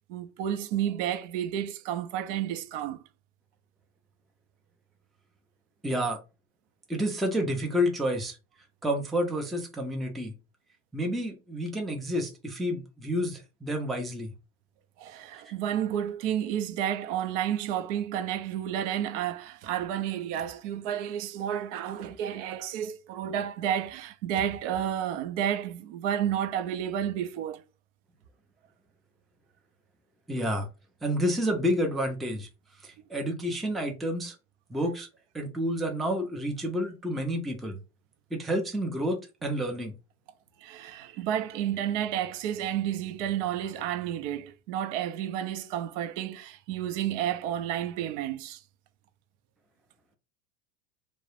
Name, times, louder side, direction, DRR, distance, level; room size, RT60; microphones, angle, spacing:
voice 1, 0.1-3.0 15.0-27.6 40.6-48.6, right 10 dB, 65° right, 0.5 m, -31 dB
voice 2, 5.8-6.2 6.9-8.4 8.8-10.3 10.9-14.3 15.4-15.5 30.3-30.7 31.0-32.5 32.8-34.4 34.7-35.1 35.3-37.8 38.3-39.9, equal, ahead, 0.3 m, -29 dB
2.2 x 2.0 x 3.0 m
supercardioid pair, 100°, 39 cm